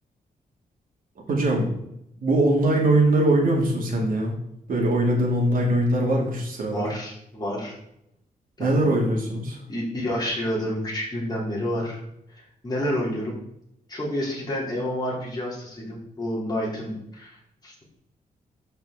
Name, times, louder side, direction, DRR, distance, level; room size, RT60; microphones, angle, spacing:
voice 1, 1.3-1.7 2.2-4.4 4.7-6.9 8.6-9.6, right 1 dB, 65° right, -1 dB, 2.2 m, -21 dB
voice 2, 6.7-7.7 8.6-8.8 9.7-12.0 12.6-13.3 13.9-17.8, equal, 25° left, -4 dB, 3.0 m, -29 dB
11.5 x 4.6 x 3.6 m, 0.78 s
wide cardioid pair, 135°, 16 cm